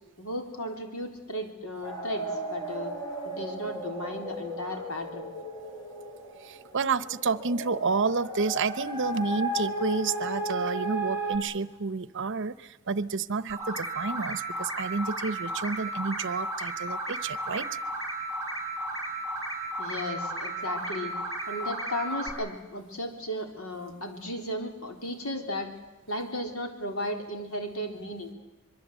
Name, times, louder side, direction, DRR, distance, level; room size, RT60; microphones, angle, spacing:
voice 1, 0.2-2.9 3.3-5.3 19.8-21.1 21.5-25.7 26.1-28.4, equal, 80° left, 4 dB, 3.8 m, -35 dB
sound 1, 1.8-11.4, right 1 dB, 20° left, 4.8 m, -35 dB
voice 2, 6.4-17.7, right 4 dB, 60° right, 16 dB, 0.8 m, -30 dB
sound 2, 13.5-22.3, right 1 dB, 15° right, 6.9 m, -34 dB
24.0 x 23.0 x 8.3 m, 1.0 s
head